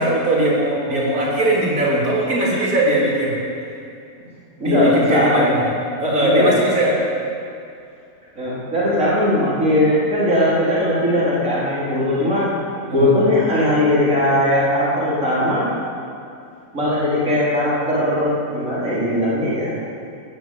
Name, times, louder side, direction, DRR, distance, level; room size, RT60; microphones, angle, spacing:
voice 1, 0.0-3.4 4.6-5.7 6.0-7.0 12.9-13.1, right 1 dB, 80° right, -6 dB, 4.4 m, -19 dB
voice 2, 4.6-5.5 6.2-6.5 8.4-12.5 12.9-15.7 16.7-19.7, left 1 dB, 60° right, -9 dB, 4.7 m, -19 dB
16.5 x 11.0 x 7.9 m, 2.4 s
omnidirectional pair, 1.5 m